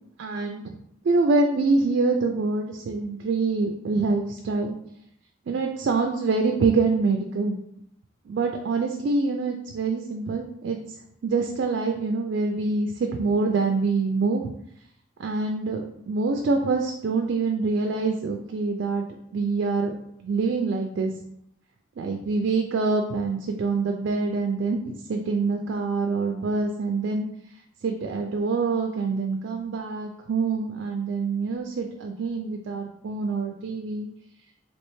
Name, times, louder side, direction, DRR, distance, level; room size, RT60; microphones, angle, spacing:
voice 1, 0.2-0.7 1.0-4.7 5.5-7.6 8.3-11.0 11.2-14.5 15.2-19.0 19.3-19.9 20.2-21.1 22.0-27.3 27.8-34.1, right 4 dB, 60° right, 3 dB, 0.3 m, -25 dB
3.2 x 2.8 x 3.1 m, 0.75 s
head